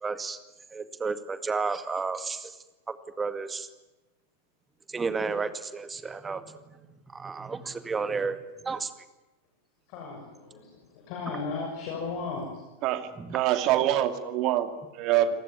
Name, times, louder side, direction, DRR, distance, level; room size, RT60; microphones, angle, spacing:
voice 1, 0.0-0.4 0.7-2.6 2.9-3.7 4.9-6.8 7.1-8.9 13.2-13.4, right 4 dB, 15° right, 11 dB, 2.1 m, -32 dB
voice 2, 9.9-12.6, left 4 dB, 45° left, 1 dB, 6.9 m, -36 dB
voice 3, 12.8-15.3, right 12 dB, 40° right, 9 dB, 2.6 m, -25 dB
29.0 x 19.5 x 9.5 m, 1.1 s
figure-of-eight pair, 90°, 0 cm